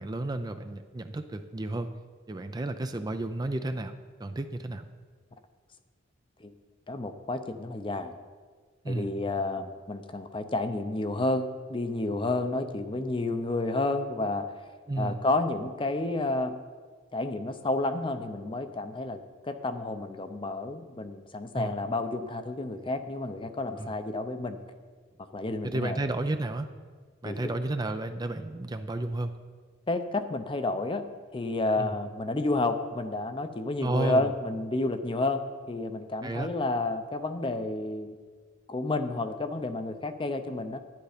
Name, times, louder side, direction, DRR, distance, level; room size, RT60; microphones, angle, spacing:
voice 1, 0.0-1.9 2.3-3.9 4.2-4.8 8.8-9.1 14.9-15.2 21.5-21.7 23.8-23.9 25.6-26.7 27.2-29.3 31.8-31.9 33.8-34.3 36.2-36.5, right 2 dB, 20° right, 8 dB, 0.4 m, -32 dB
voice 2, 6.9-8.1 8.9-14.5 15.0-16.6 17.1-19.2 19.4-24.6 25.3-26.0 27.2-27.4 29.9-31.0 31.3-38.2 38.7-40.8, left 2 dB, 25° left, 9 dB, 0.6 m, -30 dB
10.5 x 10.0 x 5.1 m, 1.5 s
head